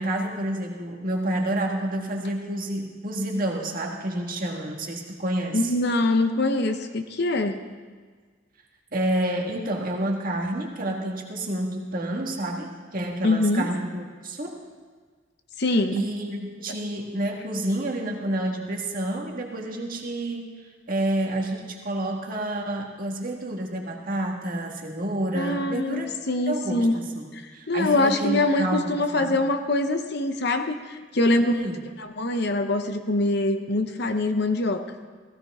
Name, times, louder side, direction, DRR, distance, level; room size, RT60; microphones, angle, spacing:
voice 1, 0.0-5.7 8.9-14.6 15.9-20.5 20.9-26.1 26.5-29.4 31.2-31.8, right 1 dB, 45° right, 1 dB, 1.7 m, -29 dB
voice 2, 5.5-7.6 13.2-13.7 15.6-16.0 25.3-27.0 27.3-31.6 32.0-34.9, left 2 dB, 55° left, 7 dB, 0.8 m, -24 dB
16.0 x 16.0 x 3.6 m, 1.5 s
head